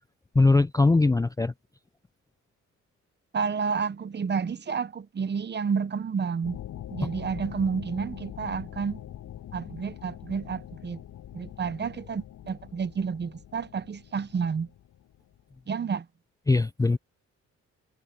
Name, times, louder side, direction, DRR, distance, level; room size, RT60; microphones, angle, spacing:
voice 1, 0.4-1.5 16.5-17.0, left 3 dB, 10° left, 0.5 m, -21 dB
voice 2, 3.3-6.6 6.9-9.0 9.5-11.0 11.3-14.7 15.7-16.0, right 6 dB, 35° right, 1.1 m, -30 dB
sound 1, 6.4-15.6, left 11 dB, 75° left, 7.9 m, -43 dB
cardioid pair, 90°, 30 cm